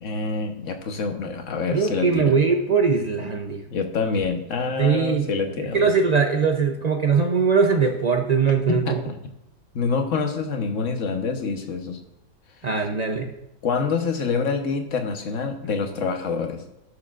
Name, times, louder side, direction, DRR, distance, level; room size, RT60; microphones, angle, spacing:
voice 1, 0.0-2.3 3.7-5.9 8.7-9.2 9.7-12.0 13.6-16.6, left 5 dB, 50° left, 5 dB, 1.3 m, -26 dB
voice 2, 1.7-3.6 4.8-5.3 5.7-9.0 12.6-13.3, right 5 dB, 75° right, 3 dB, 0.3 m, -21 dB
18.0 x 6.7 x 2.5 m, 0.88 s
omnidirectional pair, 1.8 m